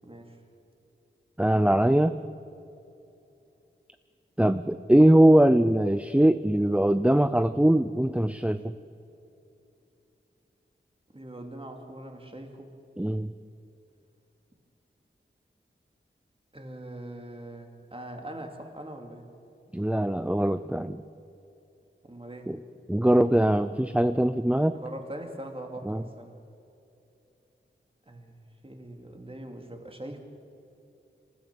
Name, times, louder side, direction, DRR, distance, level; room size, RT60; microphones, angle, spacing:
voice 1, 0.0-0.4 11.1-12.7 16.5-19.2 22.0-22.5 24.7-26.4 28.1-30.2, right 1 dB, 25° right, 3 dB, 2.7 m, -42 dB
voice 2, 1.4-2.2 4.4-8.7 13.0-13.3 19.7-21.0 22.5-22.6 22.9-24.8 25.9-26.0, right 1 dB, 5° right, 11 dB, 0.5 m, -22 dB
27.0 x 15.0 x 7.0 m, 2.8 s
wide cardioid pair, 70°, 21 cm